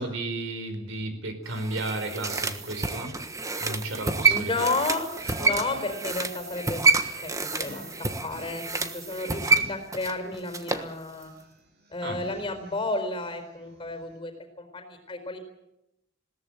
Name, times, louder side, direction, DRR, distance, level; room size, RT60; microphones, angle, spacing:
voice 1, 0.0-3.2 3.6-4.7 12.0-12.2, right 2 dB, 70° right, 8 dB, 4.2 m, -33 dB
sound 1, 1.5-10.9 11.2-11.3, right 4 dB, 15° right, 1.4 m, -28 dB
sound 2, 4.1-14.2, right 1 dB, 55° right, 5.5 m, -49 dB
voice 2, 4.3-5.1 5.4-6.9 7.2-7.8 8.2-11.3 11.9-14.3 14.6-15.4, left 2 dB, 25° left, 7 dB, 4.4 m, -32 dB
21.0 x 18.0 x 8.9 m, 0.86 s
head